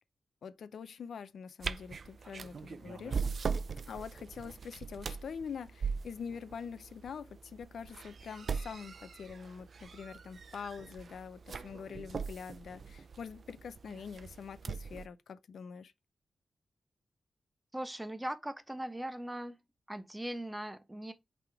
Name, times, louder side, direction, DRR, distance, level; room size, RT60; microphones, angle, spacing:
voice 1, 0.4-3.2 3.9-15.9, left 6 dB, 90° left, 0.5 m, -45 dB
sound 1, 1.6-15.1, right 5 dB, 55° right, 0.4 m, -41 dB
voice 2, 17.7-19.6 19.9-21.1, right 1 dB, 10° right, 0.6 m, -39 dB
5.9 x 3.5 x 4.6 m
wide cardioid pair, 145°, 0 cm